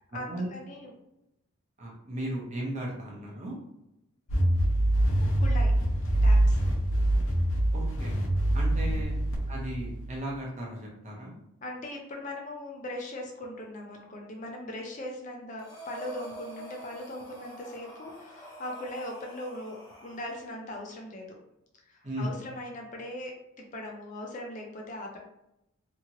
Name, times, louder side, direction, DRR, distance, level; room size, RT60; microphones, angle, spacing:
voice 1, 0.1-0.9 5.4-5.7 6.2-6.6 8.9-9.0 11.6-21.4 21.9-25.2, left 1 dB, 35° left, 0 dB, 0.4 m, -39 dB
voice 2, 1.8-3.6 7.7-8.1 8.5-9.2 9.5-11.3 22.0-22.4, equal, 35° right, -3 dB, 0.7 m, -36 dB
sound 1, 4.3-10.2, right 1 dB, 75° left, 0.7 m, -25 dB
Breathing, 15.6-20.5, equal, 20° left, 0.7 m, -46 dB
2.8 x 2.5 x 2.8 m, 0.87 s
head